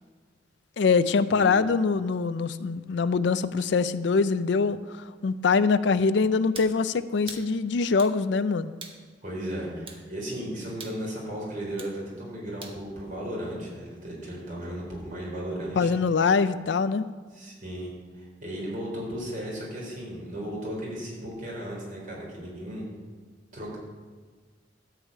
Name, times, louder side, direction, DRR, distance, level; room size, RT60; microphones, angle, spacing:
voice 1, 0.8-4.8 5.2-8.7 15.8-17.1, left 4 dB, 65° left, 14 dB, 0.4 m, -23 dB
sound 1, 6.5-6.8 7.3-7.5 8.0-8.2 8.8-9.0 9.9-10.0 10.8-11.0 11.8-12.0 12.6-12.8, right 4 dB, 30° right, 1.1 m, -42 dB
voice 2, 9.2-15.9 17.3-22.8 23.5-23.8, right 1 dB, 45° right, -3 dB, 4.1 m, -35 dB
13.0 x 4.9 x 8.4 m, 1.5 s
head